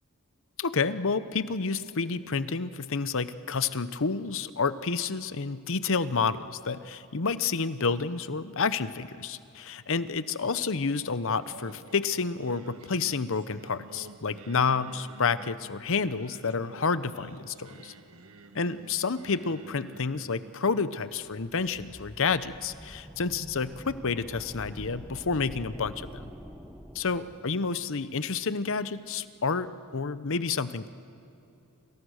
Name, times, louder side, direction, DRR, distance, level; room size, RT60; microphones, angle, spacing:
voice 1, 0.6-17.9 18.5-26.3 26.9-30.9, left 4 dB, 60° left, 14 dB, 0.8 m, -29 dB
Singing, 11.4-22.5, right 2 dB, 75° right, 1.4 m, -51 dB
sound 1, 21.2-27.7, equal, ahead, 1.4 m, -46 dB
28.5 x 27.0 x 6.5 m, 2.8 s
head